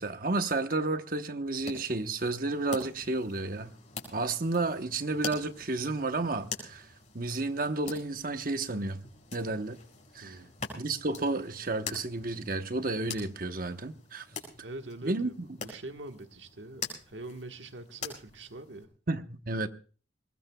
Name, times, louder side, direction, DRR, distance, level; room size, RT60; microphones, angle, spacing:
voice 1, 0.0-3.7 4.1-6.9 7.1-9.0 9.3-9.8 10.1-10.4 10.8-14.3 15.0-15.3 19.1-19.7, right 2 dB, 50° right, 1.0 m, -31 dB
sound 1, 1.5-18.8, left 5 dB, 40° left, 5.1 m, -45 dB
voice 2, 10.2-10.5 14.6-18.9, right 2 dB, 85° right, 1.5 m, -44 dB
23.0 x 19.5 x 2.3 m
head